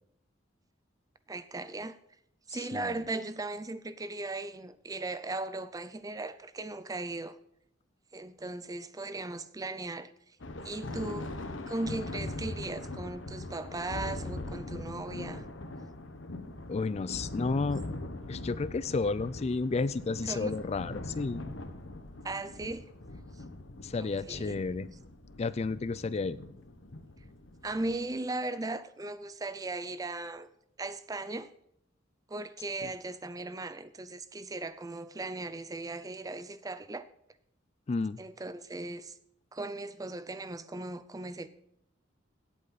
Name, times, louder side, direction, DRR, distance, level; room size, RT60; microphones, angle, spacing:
voice 1, 1.3-2.0 2.5-7.3 8.1-10.1 10.6-11.3 11.7-15.4 20.3-20.5 22.2-22.8 24.0-24.5 27.6-30.5 30.8-31.5 32.3-37.0 38.2-39.2 39.5-41.5, right 2 dB, 20° right, 0.5 m, -37 dB
voice 2, 2.5-2.9 16.7-17.8 18.3-21.4 23.8-24.9 25.4-26.4 37.9-38.2, left 4 dB, 35° left, 0.4 m, -32 dB
Thunder, 10.4-28.1, left 2 dB, 80° left, 1.2 m, -41 dB
16.5 x 8.6 x 4.0 m
head